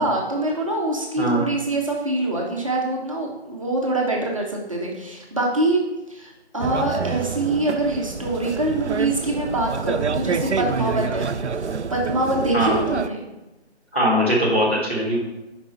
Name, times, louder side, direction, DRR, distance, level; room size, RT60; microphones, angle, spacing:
voice 1, 0.0-5.8 6.1-11.3 11.6-13.2, right 2 dB, 30° right, -2 dB, 1.1 m, -24 dB
sound 1, 6.6-13.1, right 5 dB, 85° right, 0.5 m, -27 dB
voice 2, 13.9-15.2, equal, 10° left, -11 dB, 0.9 m, -20 dB
6.6 x 5.3 x 5.7 m, 1.0 s
figure-of-eight pair, 165°, 34 cm